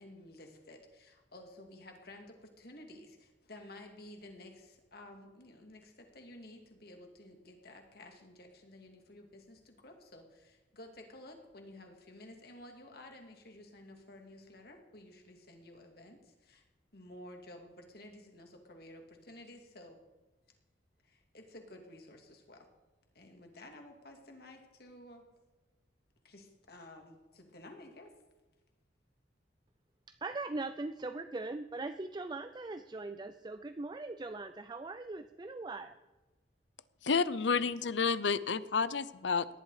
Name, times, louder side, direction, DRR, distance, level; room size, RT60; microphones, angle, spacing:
voice 1, 0.0-16.6 16.9-20.0 21.0-22.7 23.1-25.2 26.2-28.1, left 1 dB, 55° left, 3 dB, 2.5 m, -53 dB
voice 2, 30.1-36.0, right 2 dB, 25° right, 10 dB, 0.4 m, -40 dB
voice 3, 37.0-39.5, left 5 dB, 80° left, 17 dB, 0.7 m, -30 dB
18.0 x 11.0 x 4.9 m, 1.1 s
head